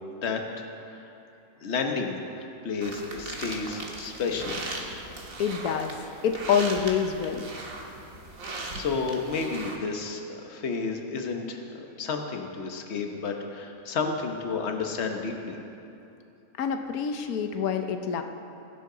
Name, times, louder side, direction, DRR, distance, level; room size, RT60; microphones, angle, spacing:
voice 1, 0.1-1.0 1.6-2.2 2.6-4.6 8.5-15.6, left 4 dB, 50° left, 3 dB, 1.3 m, -31 dB
sound 1, 2.8-9.8, right 2 dB, 70° right, 2.0 m, -38 dB
voice 2, 5.4-6.0 6.2-7.5 16.6-18.2, left 7 dB, 90° left, 6 dB, 1.2 m, -26 dB
21.0 x 11.0 x 3.9 m, 2.8 s
omnidirectional pair, 1.5 m